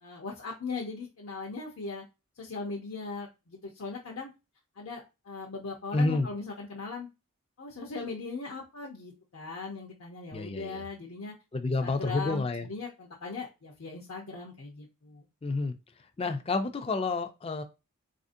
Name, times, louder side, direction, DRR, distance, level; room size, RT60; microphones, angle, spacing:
voice 1, 0.0-2.0 2.4-4.3 4.8-7.1 7.6-11.3 11.8-15.3, left 4 dB, 70° left, -2 dB, 0.6 m, -39 dB
voice 2, 5.9-6.3 10.3-10.8 11.5-12.7 15.4-15.7 16.2-17.6, left 3 dB, 25° left, 8 dB, 0.3 m, -29 dB
4.2 x 2.5 x 2.5 m, 0.27 s
head